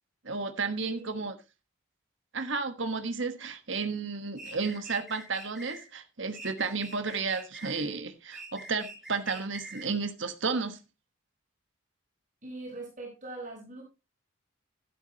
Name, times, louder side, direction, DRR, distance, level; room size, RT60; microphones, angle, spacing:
voice 1, 0.2-1.4 2.3-10.8, right 4 dB, 65° right, 1.3 m, -32 dB
voice 2, 0.8-1.3 12.4-13.8, right 2 dB, 40° right, 4.8 m, -42 dB
sound 1, 4.4-5.8 6.3-7.9 8.3-9.9, right 2 dB, ahead, 5.8 m, -45 dB
12.0 x 11.0 x 2.9 m
head